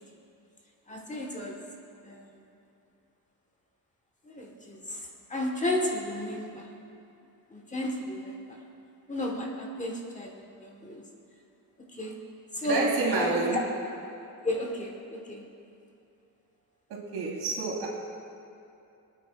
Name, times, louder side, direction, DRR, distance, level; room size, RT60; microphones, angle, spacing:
voice 1, 0.9-1.6 2.0-2.4 4.2-6.7 7.5-8.6 9.1-11.0 11.9-12.2 12.5-13.3 14.4-15.5, left 1 dB, 20° left, 0 dB, 1.2 m, -33 dB
voice 2, 12.6-13.6 16.9-17.9, right 3 dB, 80° right, -3 dB, 2.6 m, -28 dB
25.0 x 9.1 x 2.4 m, 2.7 s
wide cardioid pair, 155°, 37 cm